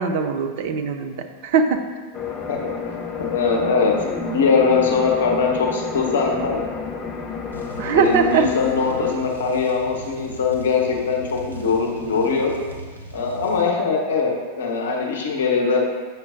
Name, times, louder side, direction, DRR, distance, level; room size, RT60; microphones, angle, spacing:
voice 1, 0.0-1.9 7.8-8.5, right 5 dB, 50° right, 6 dB, 0.5 m, -21 dB
sound 1, 2.1-9.2, left 5 dB, 25° left, 0.8 m, -31 dB
voice 2, 3.2-6.6 7.9-12.5 13.1-14.3 14.6-15.9, left 5 dB, 60° left, 0 dB, 0.9 m, -21 dB
sound 2, 7.5-13.6, equal, 85° right, 1.0 m, -39 dB
8.0 x 6.1 x 2.6 m, 1.5 s
figure-of-eight pair, 90°, 0 cm